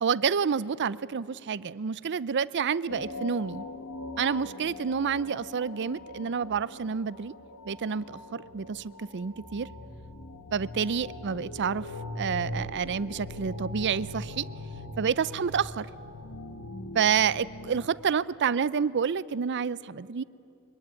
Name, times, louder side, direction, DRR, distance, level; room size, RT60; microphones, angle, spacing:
voice 1, 0.0-3.7 4.2-7.3 7.7-9.7 10.5-11.9 12.2-14.5 15.0-15.9 16.9-20.2, right 6 dB, 50° right, 18 dB, 0.5 m, -29 dB
sound 1, 2.9-17.9, left 2 dB, 80° left, 1.4 m, -41 dB
23.0 x 21.5 x 9.7 m, 2.6 s
head